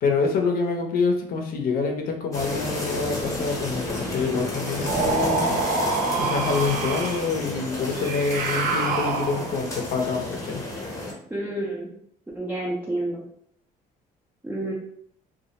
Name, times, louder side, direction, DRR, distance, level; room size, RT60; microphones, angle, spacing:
voice 1, 0.0-5.6 6.2-10.6, left 4 dB, 60° left, 3 dB, 0.6 m, -26 dB
sound 1, 2.3-11.1, left 1 dB, 20° left, 0.8 m, -31 dB
sound 2, 4.9-7.3 8.0-9.6, right 4 dB, 60° right, 0.5 m, -26 dB
voice 2, 11.3-11.9 12.3-13.2 14.4-14.7, right 1 dB, 10° right, -5 dB, 0.4 m, -29 dB
2.2 x 2.0 x 2.8 m, 0.68 s
cardioid pair, 110°, 17 cm